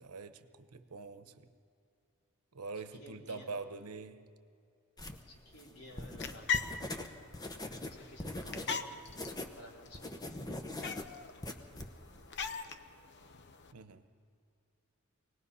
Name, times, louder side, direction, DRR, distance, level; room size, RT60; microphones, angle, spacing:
voice 1, 0.0-1.5 2.5-4.2 13.7-14.1, right 4 dB, 85° right, 11 dB, 1.0 m, -44 dB
voice 2, 3.0-3.5 5.3-6.7 7.9-9.1 9.5-10.1 10.4-10.7, left 1 dB, 80° left, -2 dB, 3.9 m, -54 dB
sound 1, 5.0-9.6 9.8-12.5, left 1 dB, 15° left, 0.9 m, -42 dB
sound 2, 5.9-13.7, left 6 dB, 50° left, 0.8 m, -42 dB
24.5 x 19.0 x 5.6 m, 2.4 s
head